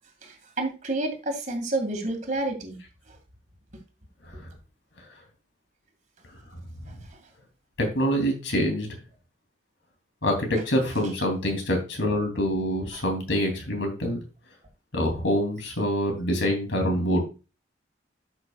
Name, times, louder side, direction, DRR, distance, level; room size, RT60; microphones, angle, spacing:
voice 1, 0.2-2.8, right 2 dB, 40° right, 3 dB, 2.2 m, -29 dB
voice 2, 7.8-8.9 10.2-14.2 14.9-17.2, equal, 80° left, 3 dB, 3.0 m, -25 dB
13.0 x 6.4 x 2.4 m, 0.30 s
head